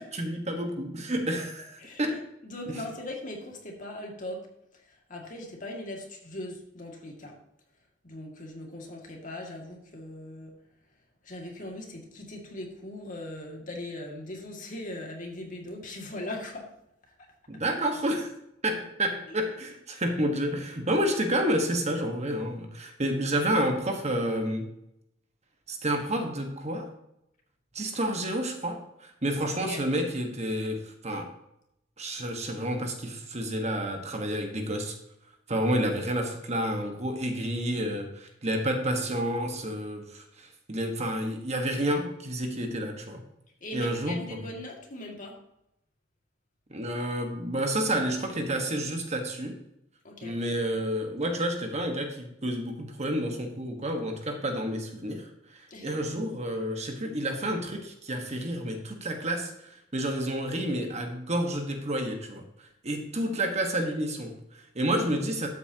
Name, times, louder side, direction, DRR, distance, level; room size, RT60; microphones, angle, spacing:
voice 1, 0.0-2.2 2.7-2.8 17.5-18.3 18.6-24.7 25.7-26.9 27.7-31.3 32.0-35.0 35.5-43.2 43.7-44.2 46.7-49.6 50.2-65.5, right 1 dB, 35° right, 4 dB, 1.4 m, -30 dB
voice 2, 2.4-4.4 5.1-7.3 8.0-10.5 11.2-16.7 19.3-19.4 29.7-29.8 43.6-45.4 50.0-50.4 55.7-56.0, left 1 dB, 45° left, 1 dB, 2.2 m, -39 dB
12.5 x 8.2 x 2.9 m, 0.81 s
head